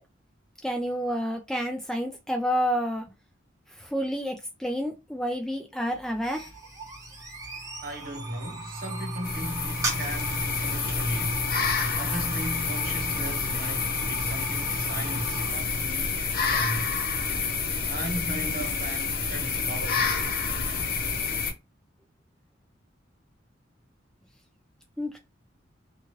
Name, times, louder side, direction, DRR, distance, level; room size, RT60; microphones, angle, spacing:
voice 1, 0.6-3.0 3.7-6.4 25.0-25.2, equal, 5° left, 0.4 m, -29 dB
sound 1, 6.0-15.5, right 1 dB, 20° right, 0.8 m, -35 dB
voice 2, 7.8-11.4 11.9-16.9 17.8-20.2, equal, 50° right, 0.9 m, -37 dB
sound 2, 9.2-21.5, left 5 dB, 50° left, 0.7 m, -28 dB
2.9 x 2.3 x 2.9 m
head